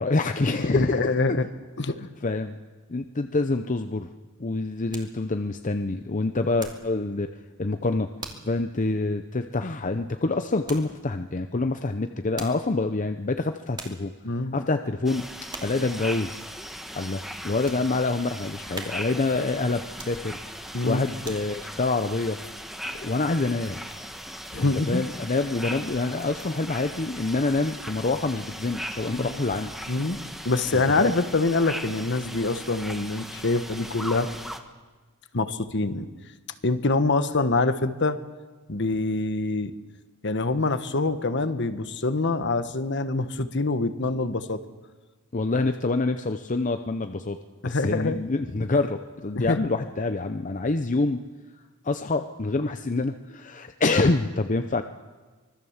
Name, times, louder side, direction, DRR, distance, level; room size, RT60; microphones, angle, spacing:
voice 1, 0.0-1.4 2.0-2.6 2.9-4.1 4.4-7.3 7.6-8.1 8.5-14.1 14.5-15.3 15.6-16.4 16.9-20.4 20.8-22.4 22.9-23.8 24.5-29.7 30.7-31.1 45.3-47.4 47.6-51.2 51.8-54.8, left 3 dB, 35° left, 7 dB, 0.7 m, -26 dB
voice 2, 0.6-1.5 1.8-2.0 14.2-14.6 20.7-21.1 24.5-25.0 29.1-29.5 29.9-30.2 30.4-34.3 35.3-36.1 36.6-38.2 38.7-39.7 40.2-44.6 47.6-48.2 49.3-49.6, left 3 dB, 55° left, 10 dB, 1.3 m, -25 dB
sound 1, 4.3-7.0 7.3-7.7 8.2-8.6 9.0-9.1 10.7-11.0 12.1-12.8 13.3-13.4 13.7-14.1 14.6-15.0 15.5-15.9 16.3-16.4 17.0-17.9 18.3-18.4 18.7-19.3 19.9-20.5 21.0-21.7 22.2-22.3, right 3 dB, 20° right, 2.5 m, -42 dB
sound 2, 15.1-34.6, equal, ahead, 1.3 m, -38 dB
25.0 x 20.0 x 7.3 m, 1.3 s
head